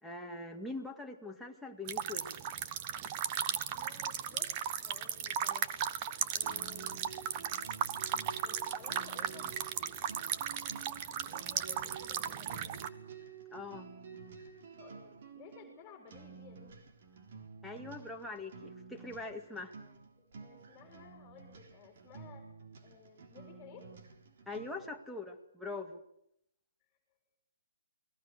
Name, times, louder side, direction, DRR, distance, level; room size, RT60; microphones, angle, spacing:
voice 1, 0.0-2.4 13.5-13.9 17.6-19.7 24.5-26.0, left 3 dB, ahead, -1 dB, 2.1 m, -43 dB
sound 1, 1.9-12.9, right 9 dB, 30° right, 1.2 m, -36 dB
voice 2, 3.7-5.7 6.3-7.1 8.4-9.6 11.2-12.8 14.8-17.0 20.2-22.4 22.8-23.9, left 6 dB, 15° left, 3 dB, 3.9 m, -55 dB
sound 2, 6.4-25.0, right 5 dB, 50° right, 3.7 m, -51 dB
29.0 x 20.0 x 6.5 m, 0.76 s
hypercardioid pair, 155°, 0 cm